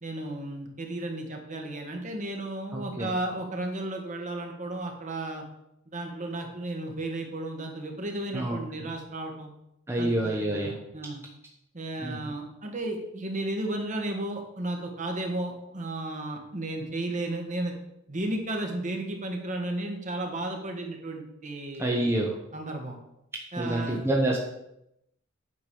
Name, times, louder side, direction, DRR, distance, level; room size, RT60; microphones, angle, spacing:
voice 1, 0.0-5.4 5.9-9.5 10.0-11.2 11.7-17.7 18.1-22.1 22.5-23.0 23.5-24.0, right 1 dB, 35° right, 2 dB, 1.8 m, -34 dB
voice 2, 2.7-3.1 8.3-8.6 9.9-10.7 12.0-12.2 21.8-22.3 23.6-24.4, right 1 dB, 10° right, -2 dB, 1.1 m, -27 dB
9.5 x 5.3 x 6.9 m, 0.82 s
head